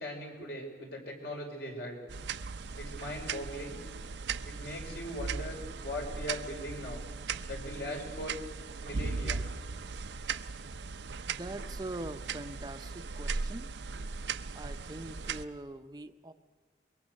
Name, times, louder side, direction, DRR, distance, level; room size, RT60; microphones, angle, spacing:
voice 1, 0.0-2.0 2.8-3.8 4.4-5.5 5.8-7.0 7.5-8.3 8.8-9.4, left 1 dB, 65° left, 1 dB, 5.0 m, -40 dB
sound 1, 2.1-15.4, right 4 dB, 90° right, 0.6 m, -38 dB
voice 2, 11.3-13.7 14.5-16.3, right 1 dB, 20° right, 8 dB, 0.6 m, -43 dB
23.5 x 22.0 x 6.5 m, 1.4 s
head